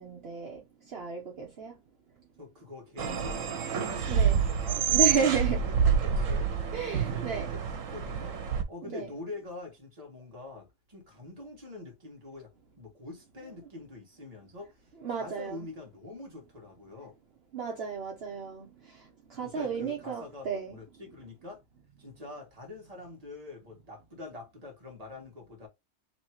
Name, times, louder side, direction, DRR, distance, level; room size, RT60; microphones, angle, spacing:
voice 1, 0.0-1.8 4.1-4.4 4.9-5.6 6.7-7.5 8.8-9.1 15.0-15.6 17.5-20.8, right 5 dB, 55° right, 1.1 m, -33 dB
voice 2, 2.4-6.5 7.0-8.4 8.7-17.2 19.4-21.6 22.0-25.7, left 2 dB, 30° right, 1.5 m, -45 dB
sound 1, 3.0-8.6, right 7 dB, 85° right, 1.2 m, -27 dB
3.1 x 3.0 x 4.4 m
omnidirectional pair, 1.3 m